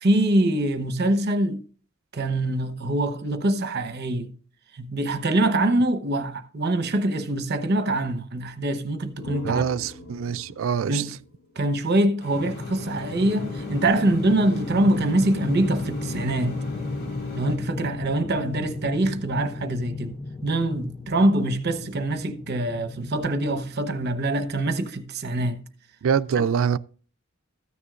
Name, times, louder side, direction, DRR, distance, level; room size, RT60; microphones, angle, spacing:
voice 1, 0.0-1.6 2.1-4.3 4.7-9.6 10.9-11.2 11.6-16.6 17.3-20.2 20.4-25.6, right 1 dB, 50° right, 1.0 m, -24 dB
sound 1, 8.9-12.5, left 2 dB, 80° left, 3.2 m, -41 dB
voice 2, 9.4-11.1 26.0-26.8, right 7 dB, 70° right, 0.4 m, -24 dB
sound 2, 12.2-17.6, left 4 dB, 55° left, 4.4 m, -38 dB
sound 3, 12.4-24.6, left 2 dB, 15° left, 0.6 m, -35 dB
14.0 x 9.6 x 2.5 m
head